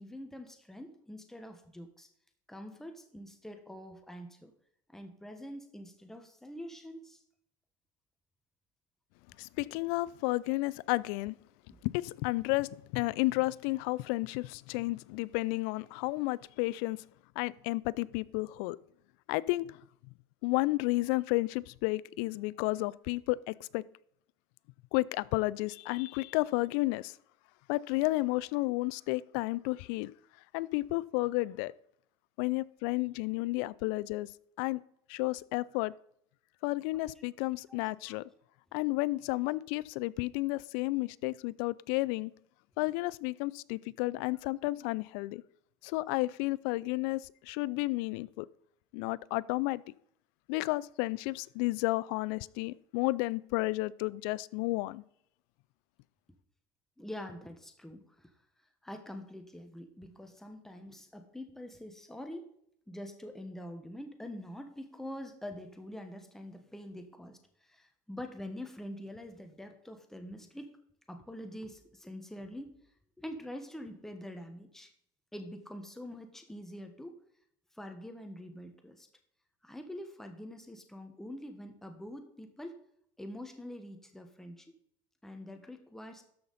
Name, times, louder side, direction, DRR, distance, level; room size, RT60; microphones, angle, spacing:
voice 1, 0.0-2.1 2.5-4.5 4.9-7.2 11.7-11.8 37.7-38.2 57.0-58.3 58.8-62.5 62.9-70.7 71.1-72.7 73.2-74.9 75.3-77.1 77.7-79.1 79.6-82.7 83.2-84.7 85.2-86.2, left 1 dB, 5° left, 1.2 m, -45 dB
voice 2, 9.4-11.4 11.8-17.0 17.4-18.8 19.3-19.8 20.4-23.8 24.9-27.2 27.7-30.1 30.5-31.7 32.4-34.3 34.6-34.8 35.1-35.9 36.6-38.2 38.7-42.3 42.8-45.4 45.8-48.5 48.9-49.8 50.5-55.0, left 21 dB, 75° left, 0.4 m, -32 dB
13.0 x 5.8 x 4.1 m
supercardioid pair, 110°, 12 cm